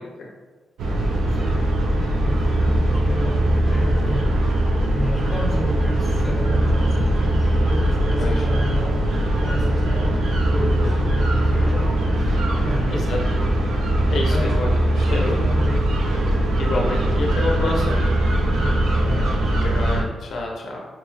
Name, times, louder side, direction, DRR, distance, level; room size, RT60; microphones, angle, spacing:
sound 1, 0.8-20.0, right 1 dB, 80° right, 0.5 m, -20 dB
voice 1, 1.9-4.3 4.9-13.0 14.3-14.5 15.1-15.8 18.4-19.6, equal, ahead, -8 dB, 1.3 m, -31 dB
voice 2, 10.6-10.9 12.9-13.2 14.1-15.4 16.6-18.0 19.6-20.9, left 2 dB, 60° left, -1 dB, 0.6 m, -28 dB
5.4 x 2.3 x 3.1 m, 1.3 s
wide cardioid pair, 170°, 0 cm